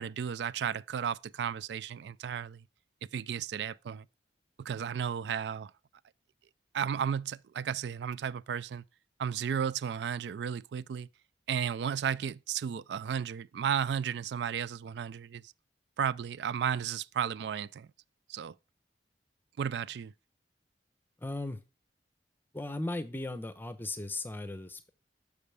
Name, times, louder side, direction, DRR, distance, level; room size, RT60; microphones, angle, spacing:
voice 1, 0.0-2.6 3.1-4.1 4.6-5.7 6.7-8.8 9.2-11.1 11.5-15.5 16.0-17.9 18.3-18.5 19.6-20.1, right 8 dB, 70° right, 0.3 m, -34 dB
voice 2, 21.2-21.6 22.5-24.9, left 2 dB, 10° left, 0.7 m, -37 dB
6.8 x 6.8 x 3.3 m
head